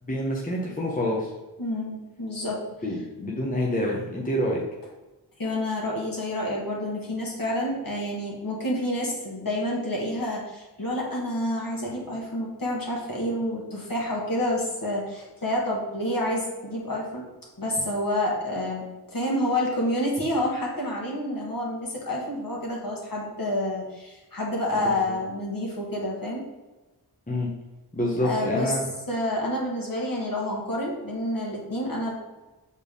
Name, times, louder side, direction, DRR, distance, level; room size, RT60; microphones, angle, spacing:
voice 1, 0.1-1.3 2.8-4.6 27.3-27.5 27.9-28.8, left 1 dB, 20° left, -2 dB, 1.1 m, -27 dB
voice 2, 1.6-2.6 5.4-17.2 17.6-18.8 19.1-26.4 28.2-28.7 29.1-32.1, left 1 dB, 55° left, -3 dB, 1.9 m, -28 dB
6.6 x 4.4 x 3.6 m, 1.1 s
wide cardioid pair, 70°, 40 cm